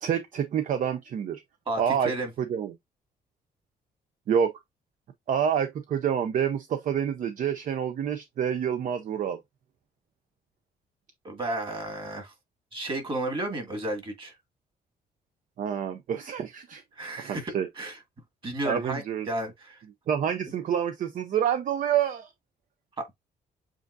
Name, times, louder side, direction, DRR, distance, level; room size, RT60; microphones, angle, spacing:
voice 1, 0.0-1.4 1.8-2.1 2.4-2.7 4.3-4.5 5.3-9.4 15.6-16.8 17.2-17.7 18.6-19.3 20.1-22.3, right 8 dB, 55° right, 0.6 m, -27 dB
voice 2, 1.7-2.3 11.2-12.3 12.7-14.3 17.0-18.0 18.4-19.8 23.0-23.1, right 1 dB, 30° right, 2.1 m, -33 dB
7.5 x 2.5 x 2.6 m
cardioid pair, 140°, 16 cm